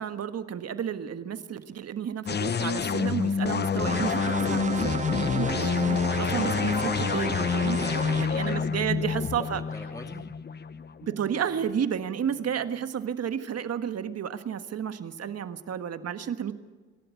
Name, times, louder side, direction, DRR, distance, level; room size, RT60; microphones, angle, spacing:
voice 1, 0.0-7.8 8.2-9.6 11.0-16.5, right 8 dB, 55° right, 10 dB, 1.5 m, -32 dB
sound 1, 2.3-11.7, left 6 dB, 35° left, 0.8 m, -28 dB
sound 2, 3.9-8.3, right 5 dB, 25° right, 0.9 m, -33 dB
voice 2, 7.8-10.3, left 1 dB, 10° left, 5 dB, 2.5 m, -45 dB
26.5 x 12.0 x 8.4 m, 1.4 s
cardioid pair, 90°, 30 cm